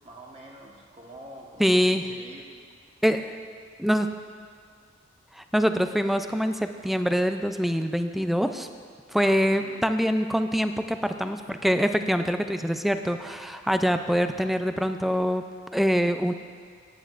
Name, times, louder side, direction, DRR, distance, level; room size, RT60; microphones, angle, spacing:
voice 1, 0.0-2.4 9.5-9.8, right 1 dB, 35° right, -1 dB, 1.3 m, -45 dB
voice 2, 1.6-2.0 3.0-3.4 3.8-4.1 5.3-8.7 9.1-15.4 15.7-16.3, equal, ahead, 8 dB, 0.4 m, -24 dB
17.0 x 10.0 x 2.5 m, 2.1 s
head